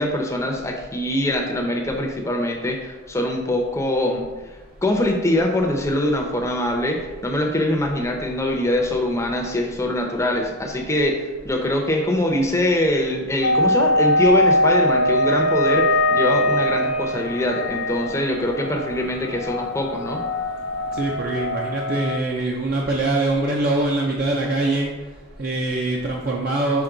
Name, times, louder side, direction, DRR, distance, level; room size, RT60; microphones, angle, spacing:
voice 1, 0.0-4.3 4.8-20.2, left 1 dB, 15° left, 2 dB, 0.6 m, -23 dB
sound 1, 13.4-22.2, left 1 dB, 60° left, 0.4 m, -22 dB
voice 2, 20.9-24.9 25.4-26.8, right 2 dB, 45° right, -1 dB, 0.5 m, -23 dB
5.9 x 4.1 x 3.9 m, 1.2 s
head